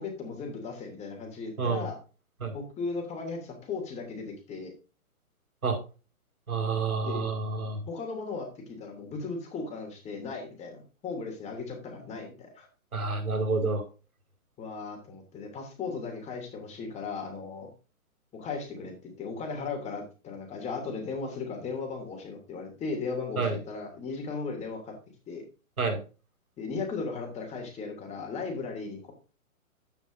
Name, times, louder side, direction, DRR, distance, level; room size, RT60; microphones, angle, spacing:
voice 1, 0.0-2.0 2.5-4.7 7.0-7.3 7.9-12.7 14.6-17.7 18.3-24.9 25.3-25.4 26.6-29.1, left 4 dB, 15° left, 3 dB, 2.9 m, -36 dB
voice 2, 6.5-7.8 12.9-13.8 23.4-23.6 25.8-26.0, right 4 dB, 85° right, 2 dB, 5.1 m, -28 dB
11.5 x 9.1 x 2.7 m, 0.34 s
hypercardioid pair, 140°, 43 cm